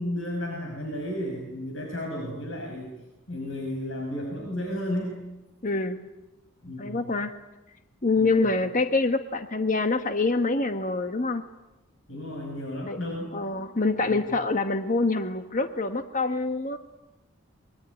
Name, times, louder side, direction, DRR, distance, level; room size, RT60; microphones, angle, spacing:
voice 1, 0.0-2.9 3.3-5.1 6.6-7.1 8.2-8.5 12.1-13.4 14.0-14.2, left 1 dB, 65° left, 1 dB, 5.7 m, -33 dB
voice 2, 5.6-6.0 6.8-7.3 8.0-11.4 12.9-13.0 13.3-16.8, left 3 dB, 35° left, 8 dB, 1.2 m, -25 dB
24.0 x 22.5 x 9.7 m, 1.0 s
head